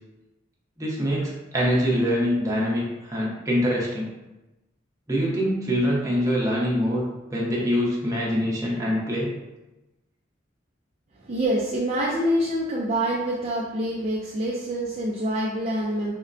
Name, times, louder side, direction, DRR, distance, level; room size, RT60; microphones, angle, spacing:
voice 1, 0.8-4.1 5.1-7.0 7.3-9.3, equal, 15° right, -5 dB, 0.8 m, -24 dB
voice 2, 11.2-16.1, right 1 dB, 35° right, -5 dB, 0.4 m, -26 dB
5.1 x 2.1 x 2.5 m, 1.0 s
head